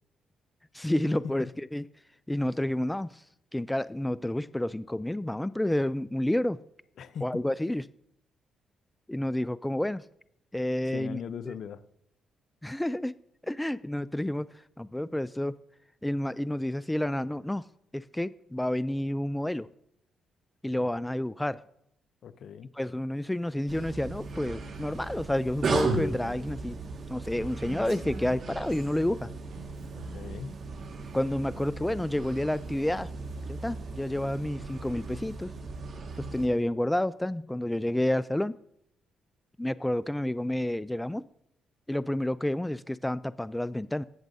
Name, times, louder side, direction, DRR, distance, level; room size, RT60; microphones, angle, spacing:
voice 1, 0.7-1.9 2.3-3.2 3.5-6.6 7.2-7.8 9.1-10.0 10.5-11.5 12.6-13.1 13.4-14.5 14.8-15.5 16.0-17.6 17.9-19.7 20.6-21.6 22.8-26.8 27.1-29.3 31.1-33.1 33.5-35.5 36.2-38.5 39.6-41.2 41.9-44.0, left 1 dB, 10° left, 0.3 m, -30 dB
voice 2, 7.0-7.4 10.9-11.8 20.8-20.9 22.2-22.7 29.9-30.6, left 7 dB, 70° left, 0.6 m, -40 dB
sound 1, 23.7-36.5, right 3 dB, 55° right, 1.7 m, -36 dB
Female speech woman speaking, 25.7-26.4 27.5-29.0 29.5-30.4, right 2 dB, 80° right, 3.8 m, -45 dB
20.0 x 7.3 x 2.7 m
cardioid pair, 75°, 0 cm